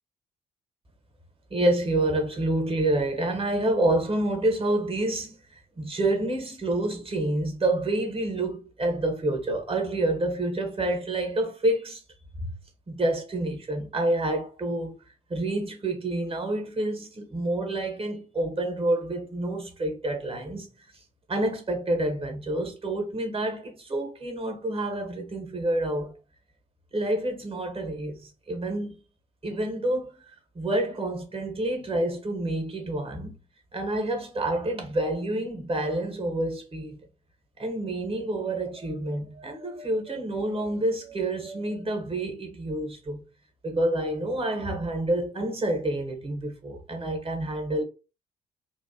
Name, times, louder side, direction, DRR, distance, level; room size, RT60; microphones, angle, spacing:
voice 1, 1.5-12.0 12.4-12.5 12.9-15.0 15.3-20.7 21.3-26.1 26.9-29.0 29.4-30.1 30.5-33.3 33.7-37.0 37.6-43.2 43.6-47.8, right 1 dB, 25° right, 1.3 m, -28 dB
3.1 x 2.6 x 2.8 m
figure-of-eight pair, 45°, 21 cm